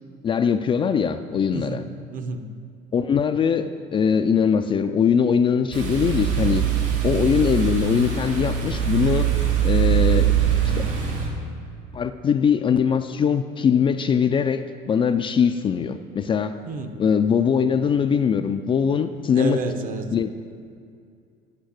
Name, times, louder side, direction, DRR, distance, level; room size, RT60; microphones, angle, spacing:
voice 1, 0.2-1.8 2.9-6.6 7.0-9.3 9.6-10.4 10.7-10.9 11.9-16.6 17.0-19.6 20.1-20.3, left 7 dB, 25° left, 8 dB, 0.3 m, -21 dB
voice 2, 1.5-2.5 16.7-17.0 19.3-20.2, right 3 dB, 45° right, 7 dB, 0.9 m, -30 dB
sound 1, 5.7-11.3, right 9 dB, 75° right, 2.8 m, -22 dB
8.8 x 5.6 x 8.0 m, 2.3 s
cardioid pair, 125°, 19 cm